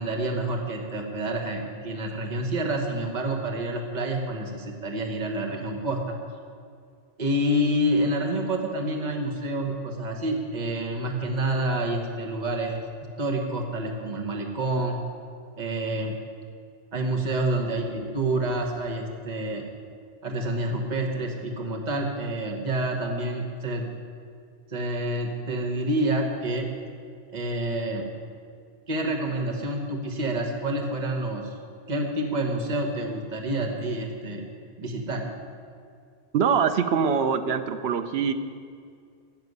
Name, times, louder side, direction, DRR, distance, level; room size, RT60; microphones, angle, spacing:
voice 1, 0.0-6.2 7.2-12.8 13.2-15.0 15.6-16.2 16.9-19.6 20.2-23.9 24.7-26.7 27.3-28.1 28.9-31.5 31.9-34.5 34.8-35.2, right 1 dB, 45° right, 1 dB, 1.5 m, -28 dB
voice 2, 36.3-38.3, right 6 dB, 80° right, 9 dB, 1.0 m, -23 dB
12.0 x 7.0 x 9.5 m, 2.3 s
omnidirectional pair, 1.0 m